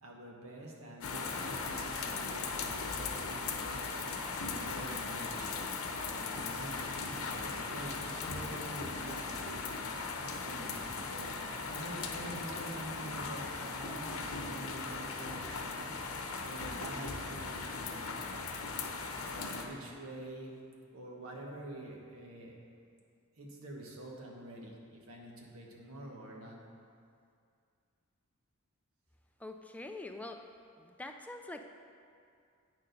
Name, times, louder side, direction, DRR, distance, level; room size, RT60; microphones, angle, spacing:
voice 1, 0.0-5.5 6.0-9.6 10.2-18.4 19.2-20.5 20.9-22.5 23.4-26.6, right 1 dB, 80° right, -1 dB, 1.4 m, -47 dB
sound 1, 1.0-19.6, left 4 dB, 85° left, 0.8 m, -38 dB
voice 2, 29.4-30.5 30.8-31.6, left 2 dB, 5° left, 5 dB, 0.3 m, -44 dB
8.5 x 6.8 x 5.2 m, 2.3 s
head